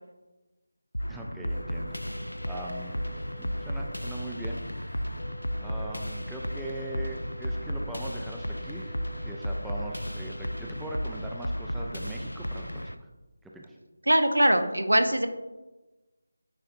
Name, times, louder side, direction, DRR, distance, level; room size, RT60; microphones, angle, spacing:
sound 1, 0.9-12.9, equal, 90° left, 0.4 m, -34 dB
voice 1, 1.1-2.0 2.5-5.0 5.6-13.1 13.4-13.8, right 1 dB, 5° right, -1 dB, 0.4 m, -41 dB
sound 2, 1.5-10.8, left 1 dB, 45° left, 0.6 m, -50 dB
voice 2, 14.1-15.3, right 1 dB, 80° right, 8 dB, 0.6 m, -22 dB
9.3 x 4.2 x 2.6 m, 1.1 s
figure-of-eight pair, 160°, 0 cm